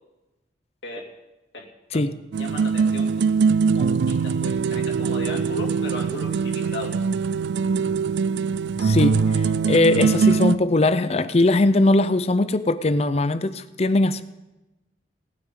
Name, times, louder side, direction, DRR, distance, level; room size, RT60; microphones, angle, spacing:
sound 1, 2.3-10.6, right 5 dB, 75° right, 0.4 m, -22 dB
voice 1, 2.4-3.3 3.7-7.0, left 2 dB, 80° left, 2.6 m, -36 dB
voice 2, 8.8-14.2, left 2 dB, 35° left, 0.6 m, -20 dB
19.0 x 9.8 x 3.8 m
head